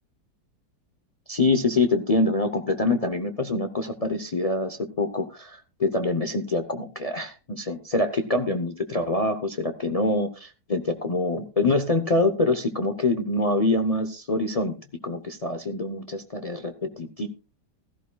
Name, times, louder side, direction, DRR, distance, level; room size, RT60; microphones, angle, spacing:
voice 1, 1.3-17.3, left 2 dB, 70° left, 7 dB, 0.3 m, -25 dB
16.0 x 14.0 x 2.3 m, 0.31 s
omnidirectional pair, 2.0 m